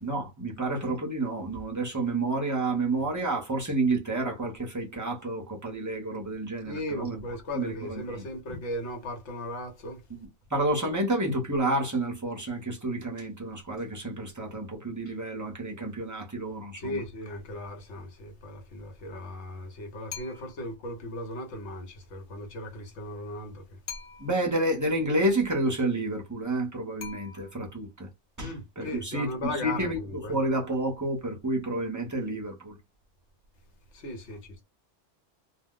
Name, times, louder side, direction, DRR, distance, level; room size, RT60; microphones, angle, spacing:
voice 1, 0.0-7.2 7.5-8.6 10.1-10.2 10.5-17.0 24.2-28.1 28.4-32.7, right 2 dB, 20° right, 0.7 m, -30 dB
voice 2, 6.6-10.0 16.8-23.8 28.4-30.4 33.9-34.6, left 1 dB, 70° left, 1.2 m, -37 dB
sound 1, 20.1-20.7 23.9-24.6 27.0-27.8, left 6 dB, 50° left, 0.7 m, -43 dB
2.5 x 2.1 x 3.6 m
omnidirectional pair, 1.2 m